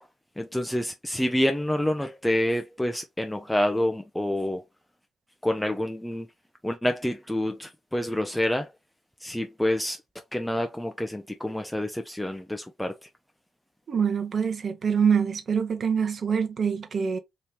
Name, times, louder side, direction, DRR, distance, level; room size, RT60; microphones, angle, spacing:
voice 1, 0.4-4.6 5.4-6.3 6.6-8.7 9.2-10.0 10.3-12.9, left 1 dB, 10° left, 0.5 m, -27 dB
voice 2, 13.9-17.2, right 6 dB, 55° right, 0.7 m, -25 dB
2.9 x 2.8 x 3.2 m
hypercardioid pair, 45°, 0 cm